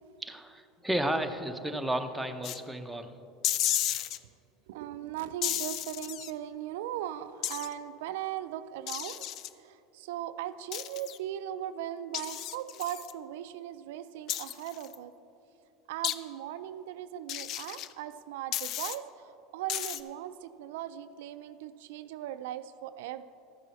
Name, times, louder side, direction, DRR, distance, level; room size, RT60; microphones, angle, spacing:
voice 1, 0.2-3.1, right 1 dB, 5° right, 5 dB, 0.7 m, -32 dB
sound 1, 2.4-2.6 3.4-4.2 5.4-6.3 7.4-7.7 8.9-9.5 10.7-11.2 12.1-13.1 14.3-15.0 16.0-16.2 17.3-17.9 18.5-19.0 19.7-20.0, left 12 dB, 55° left, 0.4 m, -33 dB
voice 2, 4.7-9.3 9.6-15.1 15.9-23.2, right 12 dB, 80° right, 12 dB, 0.3 m, -38 dB
13.5 x 6.3 x 4.1 m, 2.8 s
supercardioid pair, 105°, 0 cm